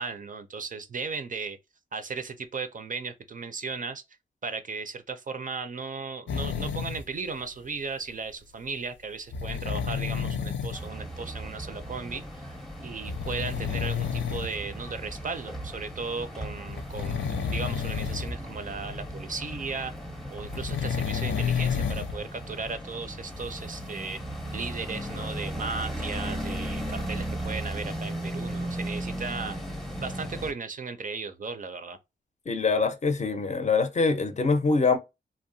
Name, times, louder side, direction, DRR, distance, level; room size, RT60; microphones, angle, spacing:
voice 1, 0.0-1.6 1.9-4.0 4.4-19.9 20.3-24.2 24.5-29.6 30.0-32.0, right 4 dB, 45° right, 0.4 m, -36 dB
sound 1, 6.3-7.0 9.3-10.8 12.2-12.3 13.1-14.5 15.2-15.3 16.7-18.4 18.7-18.8 20.4-22.2 22.7-22.8, left 7 dB, 85° left, 0.4 m, -30 dB
sound 2, 10.7-30.5, right 1 dB, ahead, 0.7 m, -36 dB
voice 2, 32.5-35.0, left 4 dB, 40° left, 0.5 m, -24 dB
2.7 x 2.0 x 2.6 m
wide cardioid pair, 100°, 19 cm